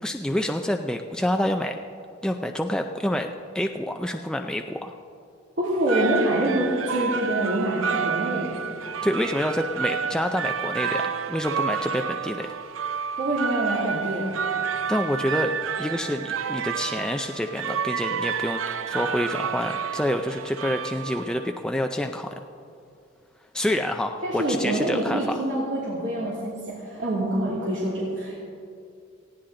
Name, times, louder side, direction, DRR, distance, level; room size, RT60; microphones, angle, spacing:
voice 1, 0.0-1.8 2.2-3.3 3.5-4.9 9.0-12.5 14.9-22.3 23.5-25.4, left 1 dB, 5° left, 4 dB, 0.4 m, -27 dB
voice 2, 5.6-8.6 13.2-14.3 24.2-28.4, right 1 dB, 60° right, -6 dB, 2.5 m, -26 dB
sound 1, 5.7-21.5, right 7 dB, 85° right, 0.5 m, -30 dB
19.0 x 16.0 x 3.8 m, 2.4 s
head